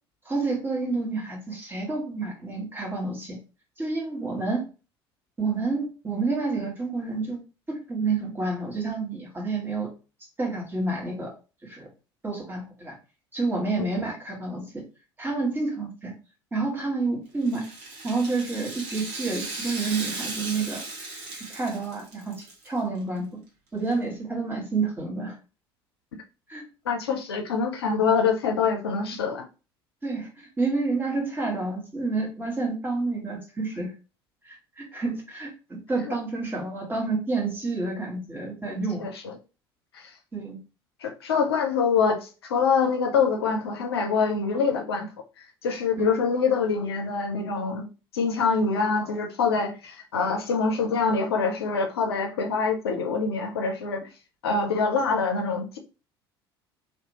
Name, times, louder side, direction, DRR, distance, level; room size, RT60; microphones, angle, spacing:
voice 1, 0.2-3.4 3.8-4.6 5.4-7.4 7.7-9.9 10.4-11.3 11.6-11.9 12.2-13.0 13.3-14.8 15.2-16.1 16.5-17.7 18.0-20.8 21.3-23.3 23.7-25.4 26.5-26.6 30.0-33.9 34.4-39.0 40.3-40.6 46.0-46.1, right 3 dB, 15° right, 1.3 m, -29 dB
Rattle (instrument), 17.4-22.7 23.0-23.1 23.9-24.0, right 3 dB, 55° right, 1.0 m, -36 dB
voice 2, 26.9-29.5 36.1-36.2 39.0-39.4 39.9-40.1 41.0-47.9 48.1-54.1 54.4-55.8, left 5 dB, 75° left, 0.4 m, -25 dB
2.7 x 2.1 x 2.8 m
figure-of-eight pair, 60°, 13 cm